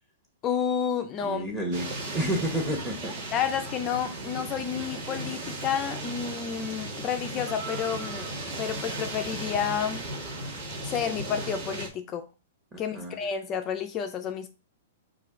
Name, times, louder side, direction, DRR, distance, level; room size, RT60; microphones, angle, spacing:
voice 1, 0.4-1.4 3.3-8.3 8.6-10.1 10.8-12.2 12.8-14.5, left 8 dB, 25° left, 7 dB, 0.4 m, -30 dB
voice 2, 1.2-1.9 2.1-3.1 12.7-13.2, right 1 dB, 10° right, 1 dB, 0.9 m, -30 dB
sound 1, 1.7-11.9, right 2 dB, 50° right, 1.2 m, -36 dB
5.0 x 2.5 x 3.6 m, 0.31 s
hypercardioid pair, 160°, 0 cm